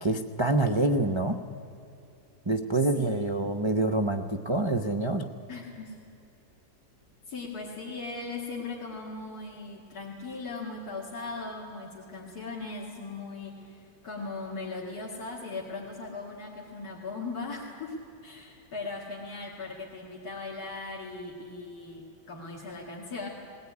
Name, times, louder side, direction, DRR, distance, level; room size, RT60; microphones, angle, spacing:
voice 1, 0.0-1.4 2.5-5.3, right 2 dB, 40° right, 3 dB, 0.4 m, -26 dB
voice 2, 2.9-3.3 5.5-6.0 7.3-18.0 18.2-23.3, left 3 dB, 65° left, -3 dB, 2.7 m, -38 dB
20.0 x 17.5 x 9.6 m, 2.7 s
omnidirectional pair, 1.8 m